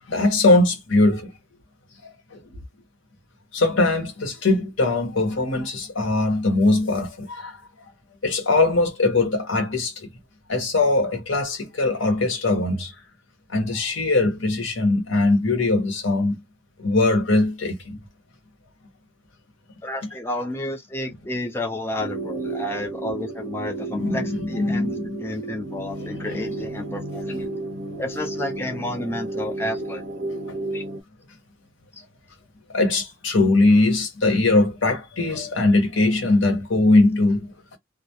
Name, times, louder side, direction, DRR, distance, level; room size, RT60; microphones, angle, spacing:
voice 1, 0.1-1.3 2.3-2.4 3.5-7.6 8.2-10.1 10.5-12.9 13.5-16.4 16.8-18.0 23.9-25.2 26.0-26.4 32.7-37.5, left 2 dB, 80° left, 0.9 m, -21 dB
voice 2, 19.8-27.5 28.0-30.0 30.7-30.8, left 1 dB, 10° left, 0.4 m, -31 dB
sound 1, 22.0-31.0, right 2 dB, 85° right, 0.6 m, -32 dB
2.2 x 2.1 x 2.7 m
head